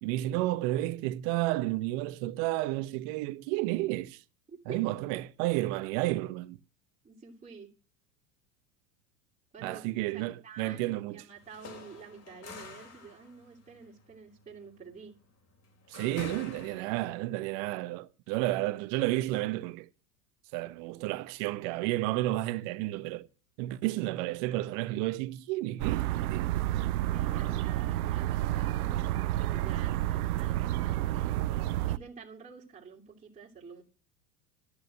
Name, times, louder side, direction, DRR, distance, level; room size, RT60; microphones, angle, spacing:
voice 1, 0.0-4.2 4.7-6.6 9.6-11.2 15.9-19.9 20.5-23.3 23.6-26.5, right 17 dB, 55° right, 1.1 m, -31 dB
voice 2, 4.5-4.8 7.0-7.7 9.5-15.1 27.1-31.3 31.8-33.8, right 5 dB, 15° right, 2.9 m, -49 dB
sound 1, 11.4-17.3, left 5 dB, 30° left, 3.1 m, -48 dB
sound 2, 25.8-32.0, right 14 dB, 70° right, 0.7 m, -30 dB
13.0 x 6.7 x 7.7 m
hypercardioid pair, 95°, 46 cm